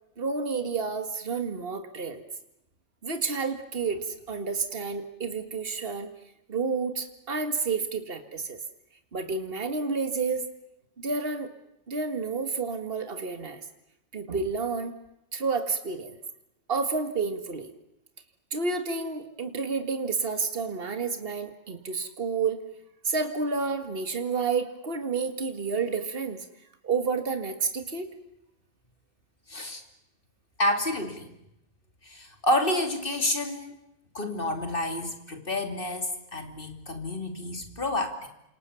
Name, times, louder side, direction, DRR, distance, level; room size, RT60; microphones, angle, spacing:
voice 1, 0.2-2.2 3.0-6.1 6.5-8.6 9.1-10.4 11.0-11.5 11.9-13.6 14.1-14.9 15.3-16.1 16.7-17.7 18.5-22.6 23.0-26.5 26.8-28.1, right 4 dB, 55° right, 8 dB, 2.2 m, -30 dB
voice 2, 29.5-29.8 30.6-31.3 32.0-33.7 34.1-38.3, left 1 dB, 50° left, 5 dB, 3.3 m, -29 dB
29.0 x 27.0 x 7.1 m, 0.84 s
omnidirectional pair, 1.1 m